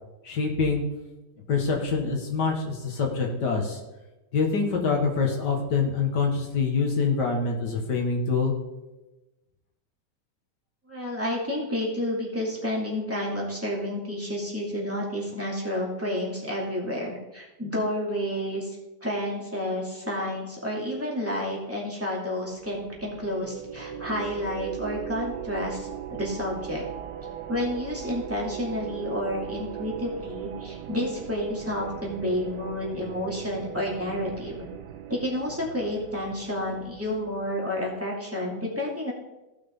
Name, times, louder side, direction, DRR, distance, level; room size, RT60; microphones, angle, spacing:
voice 1, 0.2-0.8 1.5-3.8 4.3-8.5, left 4 dB, 75° left, 1 dB, 2.3 m, -25 dB
voice 2, 10.9-26.8 27.5-34.7 35.1-39.1, left 1 dB, 10° right, -4 dB, 2.5 m, -30 dB
sound 1, 22.5-37.9, right 10 dB, 90° right, 1.4 m, -39 dB
16.0 x 6.0 x 3.8 m, 1.0 s
omnidirectional pair, 1.8 m